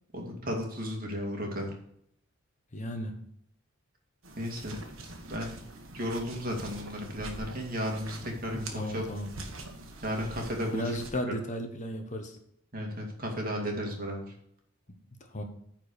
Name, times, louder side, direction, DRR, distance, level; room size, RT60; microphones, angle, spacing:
voice 1, 0.1-1.7 4.4-4.8 5.3-5.6 5.9-9.0 10.0-10.8 12.7-14.3, equal, 45° right, 1 dB, 2.2 m, -34 dB
voice 2, 2.7-3.3 8.5-9.3 10.7-12.4 15.2-15.4, equal, 35° left, 5 dB, 1.1 m, -34 dB
sound 1, 4.2-11.1, right 2 dB, 70° right, 1.6 m, -45 dB
9.6 x 4.6 x 6.7 m, 0.70 s
head